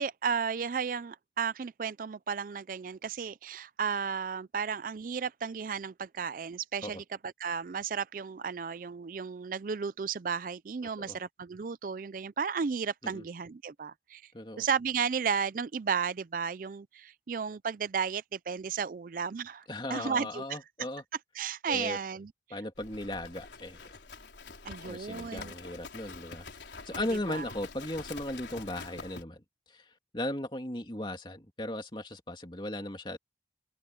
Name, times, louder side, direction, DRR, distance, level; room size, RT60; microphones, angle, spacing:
voice 1, 0.0-14.2 14.6-19.6 19.9-20.6 21.4-22.3 24.6-25.5 26.9-27.5, right 6 dB, 50° right, 0.4 m, -34 dB
voice 2, 14.3-14.7 19.7-21.0 21.7-22.0 22.5-23.8 24.8-29.4 29.7-29.8 30.1-33.2, left 1 dB, 25° left, 3.0 m, -37 dB
Livestock farm animals working animals, 22.8-29.2, left 4 dB, 75° left, 3.9 m, -46 dB
head